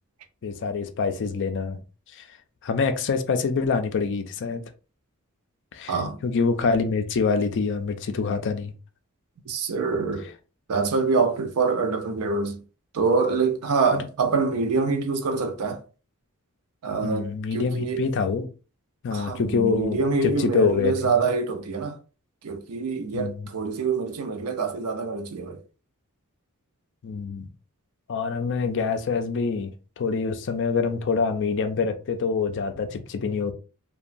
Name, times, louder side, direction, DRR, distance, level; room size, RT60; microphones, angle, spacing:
voice 1, 0.4-1.8 2.1-2.3 2.6-4.6 5.7-6.0 6.2-8.7 13.9-14.1 17.0-18.5 19.0-21.2 23.1-23.5 27.0-27.5 28.1-29.7 30.0-33.5, left 5 dB, 55° left, 0.4 m, -25 dB
voice 2, 9.5-10.2 10.7-12.6 12.9-15.8 16.8-18.0 19.1-22.0 22.4-25.6, right 4 dB, 75° right, 0.5 m, -25 dB
2.8 x 2.2 x 2.5 m
head